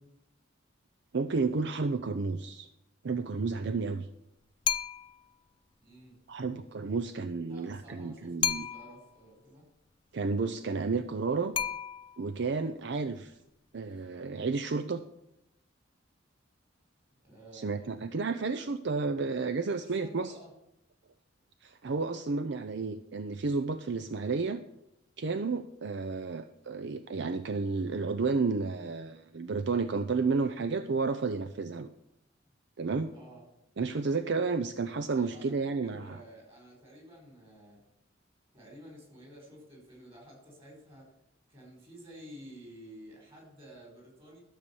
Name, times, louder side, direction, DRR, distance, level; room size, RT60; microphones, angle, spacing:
voice 1, 1.1-2.7 3.0-4.1 6.3-8.7 10.1-11.5 12.2-13.3 13.7-15.0 17.5-20.3 21.6-24.6 25.2-31.9 32.8-33.1 33.8-36.2, right 4 dB, 65° right, 10 dB, 0.5 m, -31 dB
sound 1, 4.6-5.3 8.4-9.1 11.5-12.3, left 8 dB, 25° left, 0.4 m, -32 dB
voice 2, 5.8-6.2 7.5-9.6 17.2-18.3 19.7-20.5 33.1-33.4 35.1-37.8 38.5-41.1 41.5-44.4, right 1 dB, 30° right, -1 dB, 5.1 m, -51 dB
12.5 x 6.8 x 7.1 m, 0.81 s
head